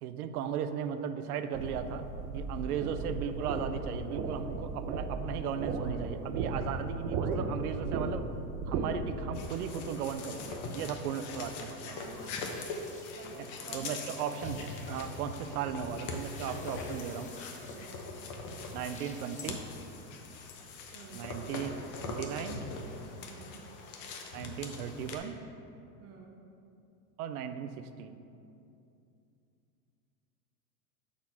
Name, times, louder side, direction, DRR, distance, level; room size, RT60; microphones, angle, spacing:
voice 1, 0.0-2.1 2.3-8.3 8.7-12.0 13.7-17.3 18.7-19.6 21.1-21.7 22.0-22.6 24.3-25.4 27.2-28.2, right 8 dB, 85° right, 10 dB, 0.6 m, -36 dB
sound 1, 1.5-9.2, right 3 dB, 55° right, 0.8 m, -35 dB
sound 2, 9.3-25.2, left 3 dB, 45° left, 0.8 m, -42 dB
voice 2, 11.6-12.6 13.1-14.2 17.7-18.0 20.9-21.4 23.2-23.7 26.0-26.4, right 4 dB, 35° right, 0 dB, 1.1 m, -50 dB
sound 3, 12.0-20.1, left 3 dB, 15° left, 0.6 m, -55 dB
6.2 x 4.3 x 4.3 m, 2.7 s
supercardioid pair, 120°, 44 cm